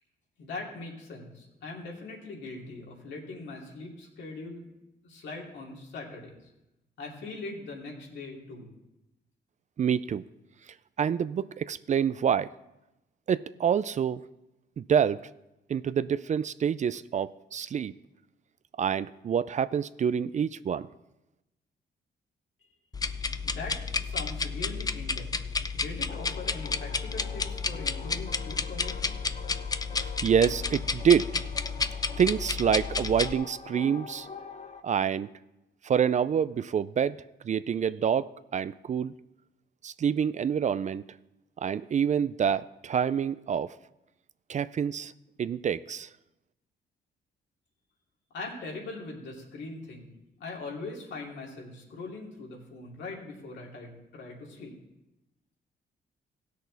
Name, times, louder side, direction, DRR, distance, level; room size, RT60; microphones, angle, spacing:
voice 1, 0.4-4.7 5.0-6.3 7.0-8.7 23.4-25.3 25.7-29.1 48.3-54.7, left 3 dB, 80° left, -2 dB, 2.6 m, -41 dB
voice 2, 9.8-10.2 11.0-12.5 13.3-14.2 14.8-15.2 15.7-17.9 18.8-20.9 30.0-31.3 32.2-34.3 34.8-35.3 35.8-37.2 37.4-39.1 39.8-41.0 41.6-43.7 44.5-45.1 45.4-46.1, right 8 dB, 40° right, 15 dB, 0.4 m, -27 dB
sound 1, 22.9-33.3, left 4 dB, 20° left, 0.4 m, -31 dB
sound 2, 26.1-34.8, left 5 dB, 40° left, 0.9 m, -45 dB
16.5 x 6.4 x 4.0 m, 0.93 s
cardioid pair, 80°, 19 cm